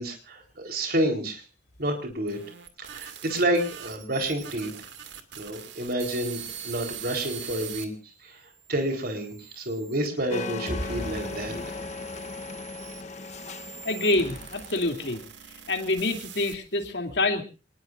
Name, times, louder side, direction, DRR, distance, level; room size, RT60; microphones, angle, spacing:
voice 1, 0.0-1.4 1.8-2.4 2.8-4.9 5.4-11.6, right 1 dB, 55° right, 4 dB, 4.0 m, -29 dB
sound 1, 2.1-7.9 8.5-10.1 10.9-16.9, right 9 dB, 80° right, 2.4 m, -43 dB
sound 2, 10.3-15.3, left 3 dB, 40° left, 1.0 m, -37 dB
sound 3, 10.7-13.6, equal, 35° right, 6.9 m, -39 dB
voice 2, 13.8-15.2 15.7-17.4, left 2 dB, 65° left, 4 dB, 3.0 m, -26 dB
27.5 x 20.0 x 2.6 m, 0.34 s
head